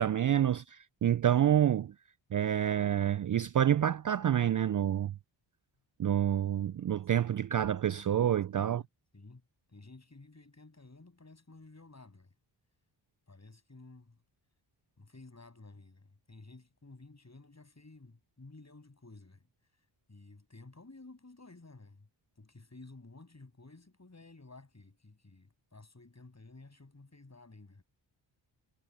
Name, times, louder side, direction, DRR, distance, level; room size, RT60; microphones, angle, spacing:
voice 1, 0.0-1.9 2.3-5.1 6.0-8.8, right 10 dB, 40° right, 0.5 m, -28 dB
voice 2, 8.1-8.8 9.1-9.4 9.7-12.3 13.3-14.2 15.0-19.5 20.1-22.1 22.4-27.8, left 3 dB, 35° left, 7.9 m, -54 dB
cardioid pair, 50°, 49 cm